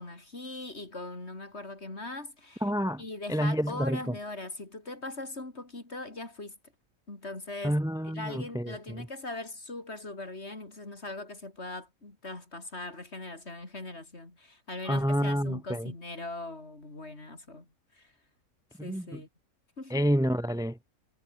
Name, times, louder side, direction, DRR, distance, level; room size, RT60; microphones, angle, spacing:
voice 1, 0.0-2.6 3.0-6.6 7.1-7.8 8.0-17.7 17.9-18.1 18.8-19.3 19.8-20.1, left 2 dB, 45° left, 4.3 m, -40 dB
voice 2, 2.6-3.0 3.3-4.1 7.6-8.7 14.9-15.9 18.8-19.0 19.9-20.7, equal, 5° right, 1.3 m, -28 dB
omnidirectional pair, 1.6 m